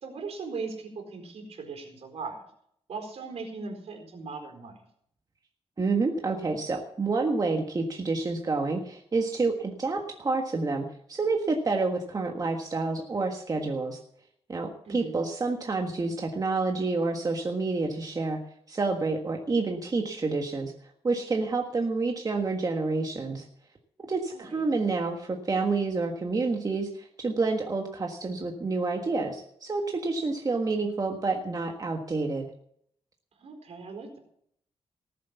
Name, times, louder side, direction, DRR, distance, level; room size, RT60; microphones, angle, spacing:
voice 1, 0.0-2.5 2.9-4.8 14.8-15.2 24.3-24.6 33.4-34.2, right 4 dB, 75° right, 3 dB, 4.3 m, -39 dB
voice 2, 5.8-14.0 14.5-18.4 18.7-20.7 21.0-23.4 24.0-32.5, right 3 dB, 35° right, 2 dB, 1.6 m, -28 dB
18.5 x 7.7 x 7.0 m, 0.69 s
wide cardioid pair, 110°, 11 cm